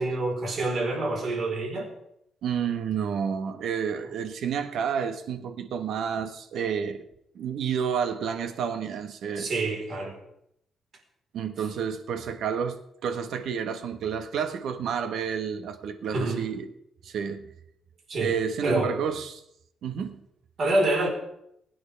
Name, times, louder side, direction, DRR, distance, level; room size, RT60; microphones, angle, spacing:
voice 1, 0.0-1.9 9.4-10.2 16.1-16.4 18.1-18.3 18.6-18.9 20.6-21.1, right 2 dB, 50° right, 1 dB, 4.2 m, -26 dB
voice 2, 2.4-7.0 7.3-9.5 11.3-16.7 17.0-17.4 18.2-19.4 19.8-20.2, right 7 dB, 75° right, 8 dB, 1.3 m, -30 dB
22.0 x 9.5 x 3.4 m, 0.77 s
cardioid pair, 125°, 0 cm